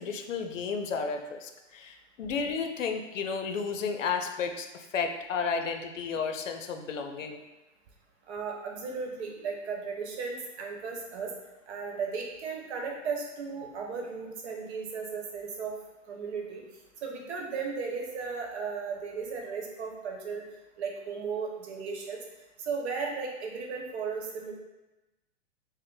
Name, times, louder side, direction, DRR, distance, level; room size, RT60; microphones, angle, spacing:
voice 1, 0.0-7.4, left 5 dB, 85° left, 6 dB, 0.6 m, -32 dB
voice 2, 8.3-11.3 11.7-15.7 16.1-16.6 17.0-20.4 20.8-22.2 22.6-24.5, right 5 dB, 60° right, 1 dB, 0.9 m, -35 dB
3.7 x 2.1 x 3.8 m, 1.0 s
hypercardioid pair, 120°, 37 cm